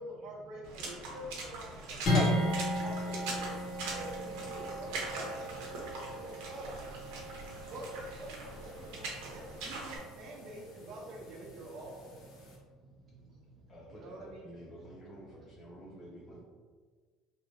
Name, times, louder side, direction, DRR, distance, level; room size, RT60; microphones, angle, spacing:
voice 1, 0.0-2.3 2.6-3.5 3.9-5.7 6.0-6.7 7.7-12.2 13.9-14.4, right 1 dB, 55° right, -2 dB, 0.8 m, -47 dB
Water / Splash splatter, 0.6-10.0, right 3 dB, 85° right, 0.8 m, -42 dB
voice 2, 1.7-2.8 4.6-4.8 5.7-6.3 7.1-7.7 9.1-9.3 10.3-10.4 12.4-13.7 15.2-15.3, right 1 dB, 30° right, -5 dB, 1.1 m, -58 dB
sound 1, 2.1-12.6, left 1 dB, 45° left, 0.9 m, -36 dB
voice 3, 13.7-16.4, equal, 25° left, -5 dB, 0.6 m, -50 dB
3.1 x 3.0 x 2.7 m, 1.5 s
cardioid pair, 145°, 0 cm